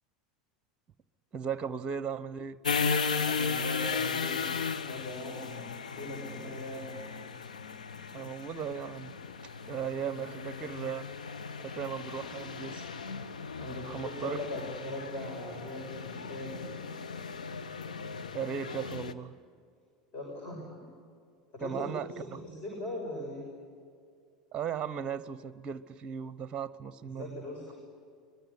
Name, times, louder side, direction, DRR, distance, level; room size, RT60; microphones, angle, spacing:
voice 1, 1.3-2.6 8.1-9.2 9.7-11.0 11.6-12.8 13.6-14.4 18.3-19.4 21.6-22.4 24.5-27.4, right 7 dB, 25° right, 18 dB, 0.8 m, -37 dB
sound 1, 2.6-19.1, left 5 dB, 75° left, 1.0 m, -36 dB
voice 2, 3.2-4.5 4.8-6.9 10.3-10.4 13.6-16.7 20.1-20.6 21.5-23.4 27.0-27.7, left 1 dB, 40° left, 0 dB, 6.7 m, -40 dB
24.5 x 21.5 x 10.0 m, 2.2 s
figure-of-eight pair, 80°, 4 cm